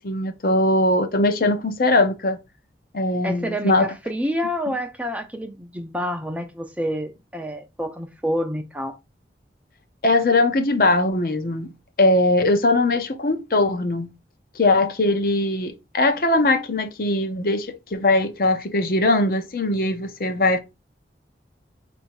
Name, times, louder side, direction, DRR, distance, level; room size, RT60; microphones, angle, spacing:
voice 1, 0.0-2.4 2.9-3.9 10.0-11.7 12.0-14.1 14.5-20.6, left 2 dB, 55° left, 0.7 m, -20 dB
voice 2, 3.2-9.0, equal, 10° right, 0.4 m, -28 dB
4.3 x 2.6 x 4.6 m
head